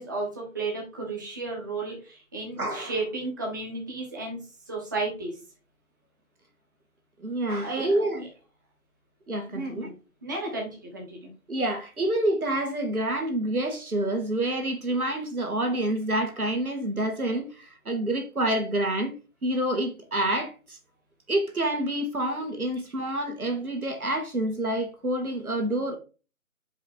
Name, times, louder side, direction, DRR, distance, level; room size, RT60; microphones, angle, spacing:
voice 1, 0.0-4.4 4.7-5.3 7.6-8.3 9.5-9.9 10.2-11.3, right 3 dB, 15° right, 1.0 m, -33 dB
voice 2, 2.6-2.9 7.2-8.3 9.3-9.9 11.5-19.1 19.4-20.8 21.3-26.0, right 1 dB, 85° right, 2.3 m, -28 dB
5.3 x 5.1 x 4.5 m
figure-of-eight pair, 160°, 43 cm